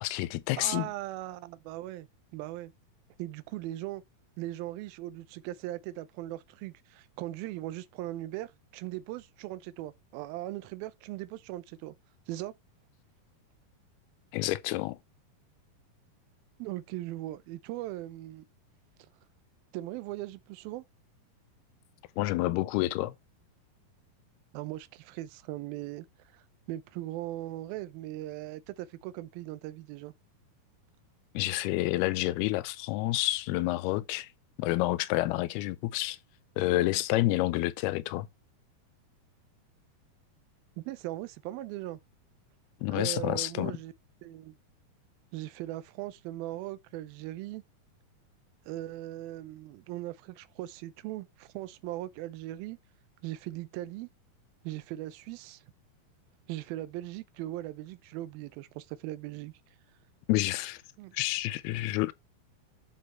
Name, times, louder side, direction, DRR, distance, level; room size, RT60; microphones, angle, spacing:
voice 1, 0.0-0.9 14.3-15.0 22.2-23.1 31.3-34.3 34.6-36.2 36.6-38.3 42.8-43.8 60.3-60.8 61.1-62.1, left 17 dB, 85° left, 2.6 m, -29 dB
voice 2, 0.6-2.1 2.3-2.7 3.2-4.0 4.4-11.9 12.3-12.5 16.6-18.4 19.7-20.9 24.5-26.1 26.3-30.1 40.8-42.0 42.9-43.9 44.2-44.6 45.3-47.6 48.7-52.8 53.2-54.1 54.6-55.6 56.5-59.5 61.0-61.1 61.7-61.8, right 15 dB, 80° right, 2.5 m, -39 dB
12.0 x 4.2 x 4.3 m
omnidirectional pair, 4.4 m